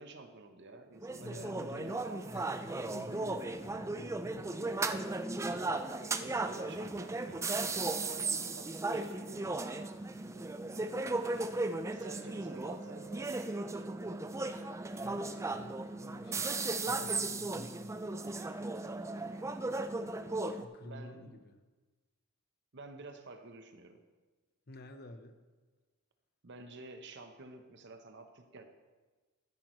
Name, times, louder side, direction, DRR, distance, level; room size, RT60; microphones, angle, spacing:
voice 1, 0.0-2.2 4.6-9.6 11.2-14.0 20.8-21.4 22.7-24.0 26.4-28.6, right 2 dB, 55° right, 7 dB, 0.9 m, -51 dB
sound 1, 1.0-20.6, right 2 dB, 15° right, 0.4 m, -36 dB
voice 2, 1.2-2.0 2.3-4.6 15.0-18.3 20.5-21.5 24.7-25.4, left 1 dB, 50° left, 7 dB, 0.9 m, -50 dB
Wind instrument woodwind instrument, 10.3-15.1, right 9 dB, 85° right, 1.8 m, -57 dB
13.5 x 10.5 x 3.1 m, 1.3 s
head